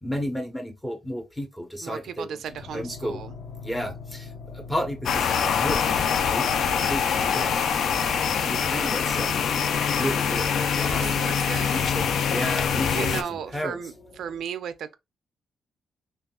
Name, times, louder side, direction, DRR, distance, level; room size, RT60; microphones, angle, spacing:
voice 1, 0.0-3.2 3.6-6.5 6.8-7.5 8.4-9.4 10.0-11.3 11.6-13.9, equal, 5° left, 0.8 m, -33 dB
voice 2, 1.8-3.3 10.8-11.7 12.9-13.9 14.2-14.9, right 8 dB, 80° right, 0.3 m, -35 dB
sound 1, 2.4-14.4, left 3 dB, 40° left, 0.7 m, -45 dB
sound 2, 5.1-13.2, left 7 dB, 75° left, 0.4 m, -24 dB
3.6 x 2.3 x 2.3 m
cardioid pair, 115°, 0 cm